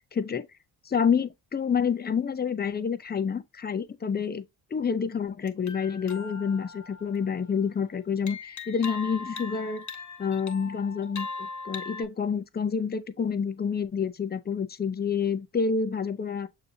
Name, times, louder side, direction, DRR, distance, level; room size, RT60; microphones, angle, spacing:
voice 1, 0.1-0.5 0.9-4.5 4.7-9.8 10.2-16.5, left 6 dB, 20° left, 0.5 m, -28 dB
sound 1, 5.5-7.7 8.3-12.1, left 4 dB, 35° left, 1.3 m, -40 dB
6.6 x 2.8 x 2.7 m
supercardioid pair, 50°, 49 cm